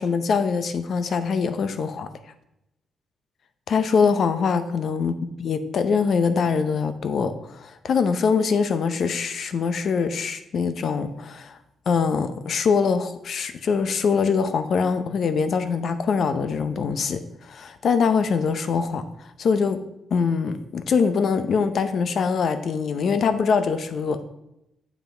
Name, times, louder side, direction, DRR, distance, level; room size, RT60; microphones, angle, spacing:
voice 1, 0.0-2.1 3.7-5.1 5.4-11.6 11.9-19.8 20.1-24.2, left 5 dB, 55° left, 10 dB, 0.6 m, -23 dB
7.2 x 5.8 x 4.4 m, 0.86 s
cardioid pair, 125°, 0 cm